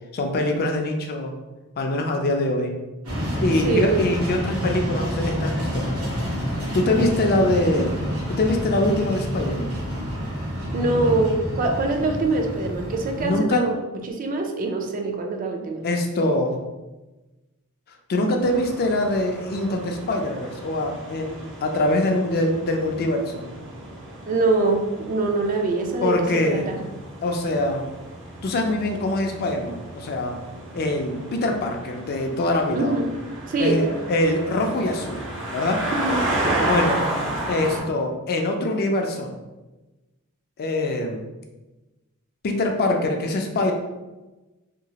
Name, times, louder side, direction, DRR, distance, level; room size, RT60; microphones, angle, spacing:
voice 1, 0.1-1.3 1.8-2.8 3.4-5.9 6.7-8.0 8.3-9.8 13.2-13.7 15.8-16.6 18.1-21.3 21.6-23.4 26.0-26.7 27.2-27.8 28.4-30.4 30.7-33.0 33.6-35.2 35.5-35.9 36.6-37.0 37.5-39.3 40.6-41.2 42.4-43.7, left 1 dB, 45° left, 3 dB, 0.4 m, -23 dB
sound 1, 3.0-13.3, equal, 85° right, 1.0 m, -28 dB
voice 2, 3.6-3.9 10.7-13.8 14.0-15.9 24.3-26.8 32.7-33.1 33.5-33.9 35.9-36.7, right 2 dB, 40° right, 3 dB, 0.4 m, -24 dB
sound 2, 18.4-37.8, right 1 dB, 60° right, 0.9 m, -33 dB
2.9 x 2.3 x 2.8 m, 1.1 s
head